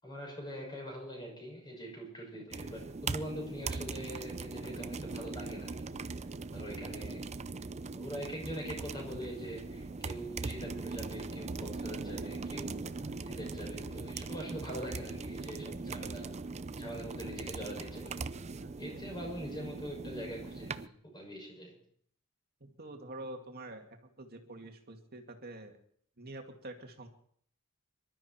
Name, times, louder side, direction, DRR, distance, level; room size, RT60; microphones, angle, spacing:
voice 1, 0.0-6.3 6.5-7.3 7.6-16.4 16.8-18.3 18.8-21.8, equal, 20° left, 0 dB, 6.5 m, -43 dB
sound 1, 2.5-20.9, right 3 dB, 30° right, 0.5 m, -40 dB
voice 2, 18.6-19.1 22.6-23.9 24.2-25.8 26.2-27.1, right 1 dB, 45° right, 4 dB, 2.3 m, -46 dB
25.0 x 13.0 x 4.4 m, 0.62 s
head